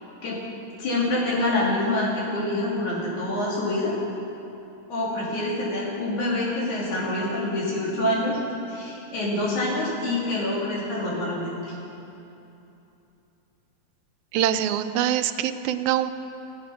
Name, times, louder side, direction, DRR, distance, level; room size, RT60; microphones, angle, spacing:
voice 1, 0.8-4.0 4.9-8.4 8.7-11.7, left 1 dB, 80° left, -6 dB, 4.1 m, -26 dB
voice 2, 14.3-16.1, right 10 dB, 85° right, 9 dB, 2.0 m, -24 dB
16.0 x 9.5 x 5.7 m, 2.9 s
omnidirectional pair, 3.3 m